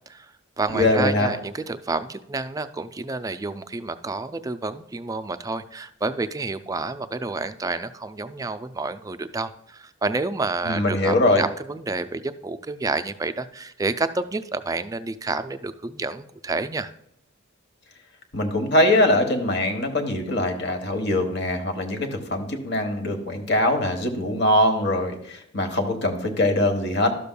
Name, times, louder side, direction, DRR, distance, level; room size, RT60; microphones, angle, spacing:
voice 1, 0.1-16.9, right 3 dB, 15° right, 11 dB, 0.3 m, -29 dB
voice 2, 0.7-1.3 10.6-11.4 18.3-27.2, left 1 dB, 55° left, 5 dB, 1.2 m, -22 dB
12.5 x 6.8 x 2.2 m, 0.78 s
head